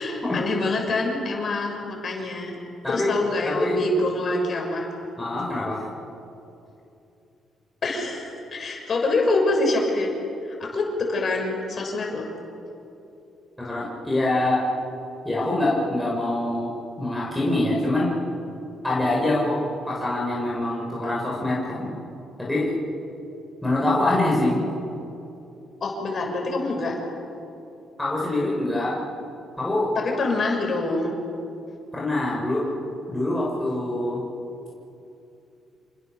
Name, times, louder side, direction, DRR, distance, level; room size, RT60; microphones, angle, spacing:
voice 1, 0.0-2.6 2.9-4.9 7.8-10.1 10.4-12.3 25.8-27.0 30.0-31.1, left 2 dB, 45° left, 1 dB, 6.9 m, -25 dB
voice 2, 3.4-3.8 5.2-5.8 13.6-14.6 15.2-16.7 17.0-18.1 18.8-21.9 22.4-22.7 23.6-24.6 28.0-28.9 29.6-29.9 31.9-32.7 33.1-34.2, left 2 dB, 5° left, -6 dB, 7.5 m, -24 dB
28.5 x 27.5 x 7.2 m, 2.7 s
cardioid pair, 90°, 0 cm